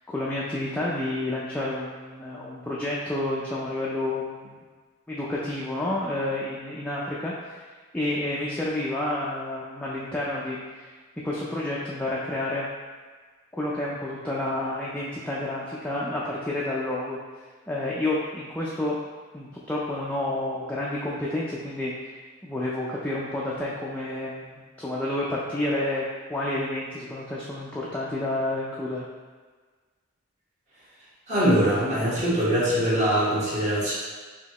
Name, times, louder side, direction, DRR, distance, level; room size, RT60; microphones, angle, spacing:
voice 1, 0.1-4.6 5.1-7.6 7.9-10.8 11.2-12.7 13.5-17.2 17.7-19.0 19.3-21.9 22.4-26.0 26.3-29.0, left 1 dB, 5° left, -6 dB, 0.4 m, -29 dB
voice 2, 31.3-33.9, equal, 35° right, -9 dB, 1.4 m, -22 dB
5.1 x 2.8 x 2.9 m, 1.5 s
head